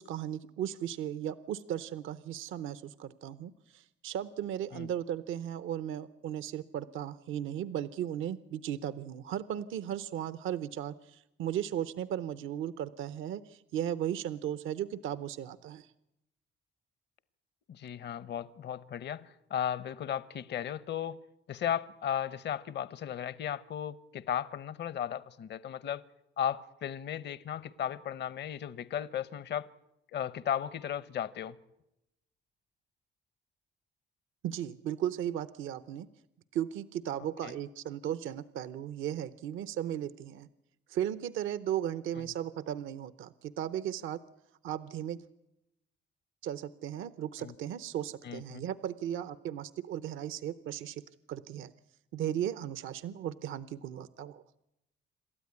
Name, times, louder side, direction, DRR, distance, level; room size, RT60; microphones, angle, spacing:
voice 1, 0.0-15.9 34.4-36.1 36.5-40.5 40.9-44.2 44.6-45.2 46.4-51.0 51.3-51.7 52.1-54.4, right 10 dB, 80° right, 0.7 m, -36 dB
voice 2, 17.7-21.2 21.5-26.0 26.4-29.7 30.1-31.6 37.4-37.5 47.4-47.5 48.2-48.7, left 9 dB, 60° left, 0.9 m, -35 dB
27.5 x 13.0 x 9.7 m
cardioid pair, 90°, 20 cm